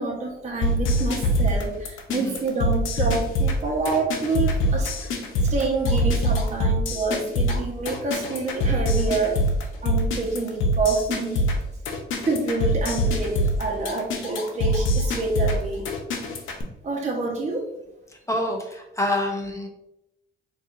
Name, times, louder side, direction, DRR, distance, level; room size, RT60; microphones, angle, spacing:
voice 1, 0.0-5.2 5.5-9.4 9.8-11.4 12.2-15.9 16.8-17.7, right 3 dB, 35° right, -3 dB, 1.0 m, -27 dB
sound 1, 0.6-16.6, equal, 85° left, 0.7 m, -24 dB
voice 2, 18.1-19.7, left 1 dB, 15° left, 2 dB, 0.7 m, -27 dB
4.4 x 2.6 x 2.5 m, 0.85 s
cardioid pair, 90°, 20 cm